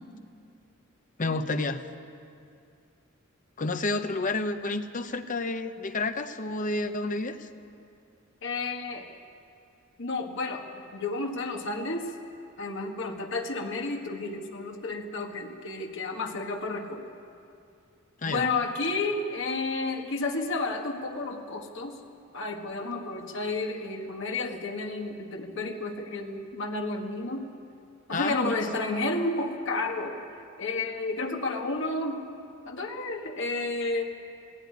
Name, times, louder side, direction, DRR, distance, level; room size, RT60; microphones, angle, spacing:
voice 1, 1.2-1.8 3.6-7.5 18.2-18.5 28.1-28.6, left 2 dB, 40° left, 8 dB, 0.9 m, -30 dB
voice 2, 8.4-9.1 10.0-12.1 12.6-17.1 18.2-22.0 22.3-27.5 28.1-30.2 30.6-32.2 32.7-34.0, left 3 dB, 65° left, 2 dB, 1.6 m, -31 dB
18.0 x 16.0 x 9.6 m, 2.5 s
head